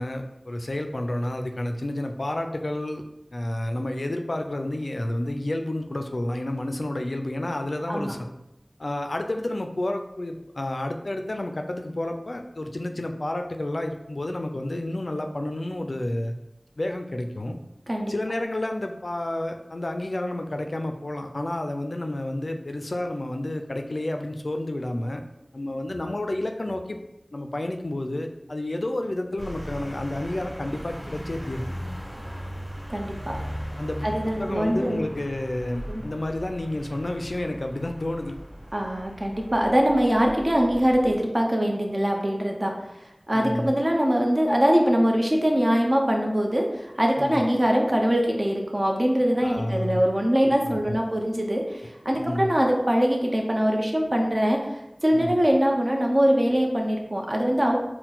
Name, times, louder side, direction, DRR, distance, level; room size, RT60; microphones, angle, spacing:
voice 1, 0.0-3.0 3.3-8.3 8.8-16.3 16.8-17.6 18.1-25.2 25.5-27.0 27.3-31.7 33.8-34.1 34.4-38.4 43.3-43.7 47.2-47.4 49.4-50.0 50.6-50.9 52.2-52.5 55.1-55.3, left 1 dB, 85° left, 5 dB, 0.3 m, -30 dB
sound 1, 29.4-41.1, equal, 20° right, 1.5 m, -38 dB
voice 2, 32.9-33.4 34.0-35.0 35.9-36.0 38.7-42.7 43.3-57.8, equal, 45° right, 1 dB, 0.7 m, -23 dB
4.4 x 2.1 x 3.9 m, 0.88 s
wide cardioid pair, 45°, 0 cm